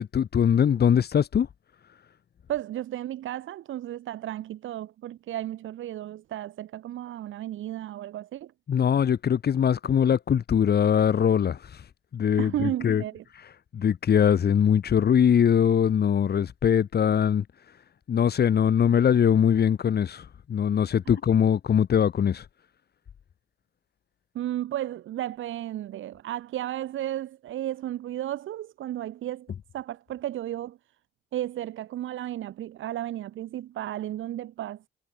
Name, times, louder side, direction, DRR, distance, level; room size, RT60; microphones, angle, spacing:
voice 1, 0.0-1.5 8.7-13.0 13.7-17.8 18.1-22.5, left 8 dB, 55° left, 3.2 m, -22 dB
voice 2, 2.5-8.5 12.4-13.2 24.3-30.8 31.3-34.9, right 13 dB, 80° right, 7.4 m, -33 dB
cardioid pair, 90°, 20 cm